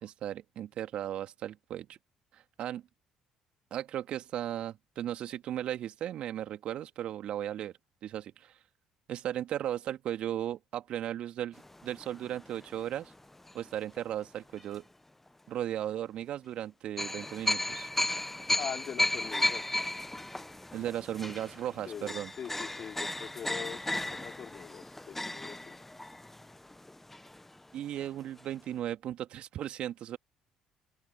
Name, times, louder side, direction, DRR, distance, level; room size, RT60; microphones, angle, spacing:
voice 1, 0.0-2.0 2.3-2.8 3.7-7.7 8.0-8.6 9.1-13.1 13.5-14.9 15.5-17.9 20.7-22.3 27.7-30.2, right 11 dB, 60° right, 2.7 m, -36 dB
sound 1, 11.5-14.0 14.6-14.7 17.0-27.7 28.0-28.1 28.4-28.5, left 1 dB, 10° left, 1.3 m, -35 dB
voice 2, 18.6-19.8 21.8-25.8 28.0-28.1, left 8 dB, 50° left, 4.7 m, -42 dB
open air
hypercardioid pair, 50°, 2 cm